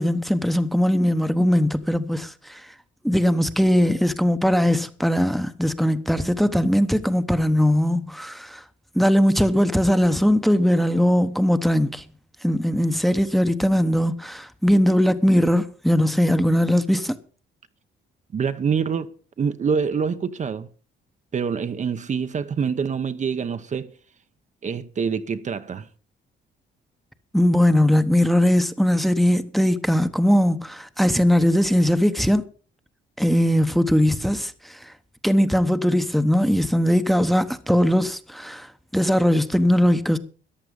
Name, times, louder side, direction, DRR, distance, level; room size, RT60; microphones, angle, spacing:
voice 1, 0.0-2.6 3.0-8.6 8.9-12.0 12.4-17.2 27.3-32.5 33.2-34.9 35.2-40.2, equal, ahead, 1.0 m, -20 dB
voice 2, 18.3-20.7 21.3-23.9 24.6-25.9, right 6 dB, 40° right, 0.9 m, -26 dB
14.0 x 10.5 x 5.3 m
cardioid pair, 125°, 20 cm